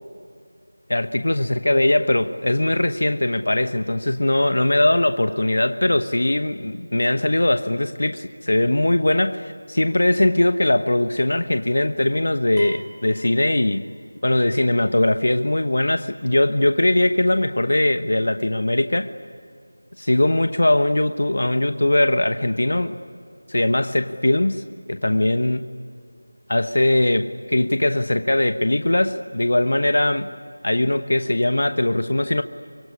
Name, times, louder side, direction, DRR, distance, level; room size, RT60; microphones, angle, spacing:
voice 1, 0.9-13.8 14.2-19.1 20.0-22.9 23.5-24.6 24.9-25.6 26.5-30.3 30.6-32.4, left 1 dB, 65° left, 10 dB, 1.1 m, -20 dB
sound 1, 12.6-14.3, right 3 dB, 5° right, 1.0 m, -47 dB
25.0 x 22.5 x 9.8 m, 2.2 s
figure-of-eight pair, 180°, 0 cm